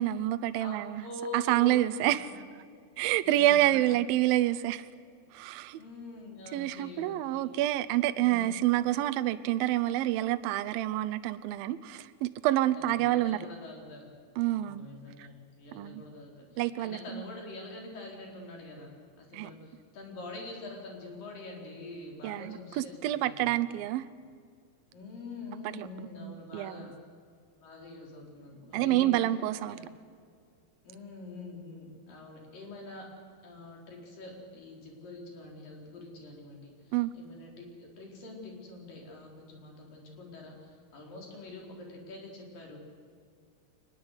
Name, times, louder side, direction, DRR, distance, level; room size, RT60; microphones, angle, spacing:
voice 1, 0.0-1.0 1.3-2.3 3.0-4.9 5.3-5.8 6.5-13.4 14.4-14.9 15.2-15.3 15.7-16.0 16.6-17.2 19.3-19.5 22.2-24.0 25.6-25.9 26.2-26.9 28.7-29.8 36.9-37.1, right 14 dB, 80° right, 12 dB, 2.3 m, -28 dB
voice 2, 0.6-2.3 3.2-3.9 5.8-7.5 8.1-8.4 12.7-14.1 14.5-23.5 24.9-27.0 27.6-29.1 29.7-29.9 30.9-33.1 33.4-42.8, left 2 dB, 55° left, 0 dB, 5.4 m, -45 dB
23.5 x 20.0 x 8.1 m, 2.2 s
omnidirectional pair, 4.7 m